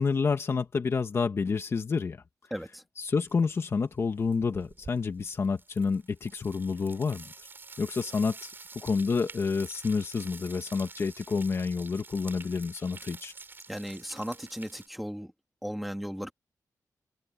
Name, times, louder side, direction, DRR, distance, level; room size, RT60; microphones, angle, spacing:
voice 1, 0.0-2.2 3.0-7.5 7.8-13.3, left 5 dB, 40° left, 1.5 m, -29 dB
voice 2, 2.5-2.8 13.7-15.3 15.6-16.3, equal, ahead, 2.4 m, -36 dB
sound 1, 3.3-3.7 3.9-14.9, right 4 dB, 35° right, 7.6 m, -48 dB
open air
wide cardioid pair, 160°, 6 cm